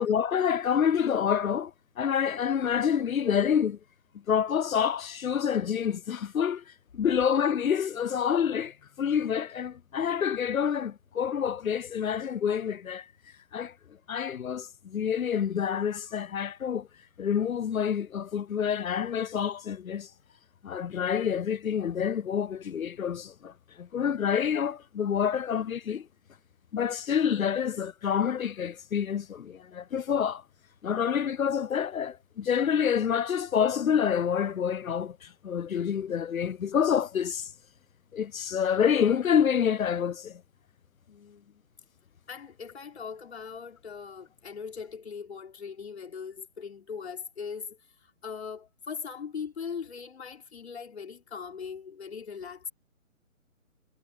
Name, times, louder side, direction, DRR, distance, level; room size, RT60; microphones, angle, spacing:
voice 1, 0.0-3.8 4.3-6.6 6.9-13.1 13.5-13.7 14.1-16.9 17.2-20.1 20.6-26.1 26.7-30.4 30.8-37.5 38.1-40.4, left 8 dB, 80° left, 0.8 m, -27 dB
voice 2, 41.1-41.6 42.3-52.7, left 6 dB, 50° left, 4.9 m, -40 dB
hypercardioid pair, 170°, 41 cm